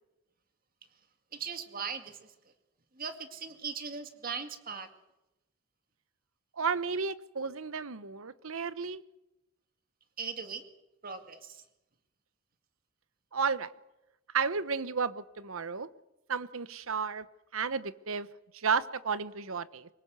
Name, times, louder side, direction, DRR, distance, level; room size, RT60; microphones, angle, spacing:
voice 1, 1.3-2.3 2.9-4.9 10.2-10.6 11.0-11.6, right 5 dB, 40° right, 7 dB, 2.1 m, -39 dB
voice 2, 6.6-9.0 13.3-13.7 14.3-15.9 16.3-17.2 17.5-18.3 18.5-19.9, right 5 dB, 75° right, 15 dB, 1.0 m, -32 dB
23.5 x 20.0 x 8.1 m, 0.95 s
head